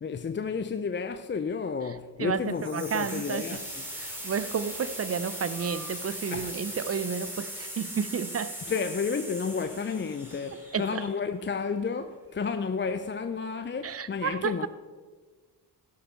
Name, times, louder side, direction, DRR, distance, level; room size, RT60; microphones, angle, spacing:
voice 1, 0.0-3.8 6.3-6.5 8.7-14.7, left 5 dB, 25° left, 0.6 m, -31 dB
voice 2, 2.2-3.5 4.0-8.6 10.7-11.0 13.8-14.7, right 6 dB, 30° right, 0.7 m, -31 dB
sound 1, 2.5-11.4, equal, 5° right, 3.9 m, -39 dB
16.0 x 6.6 x 4.5 m
hypercardioid pair, 45°, 46 cm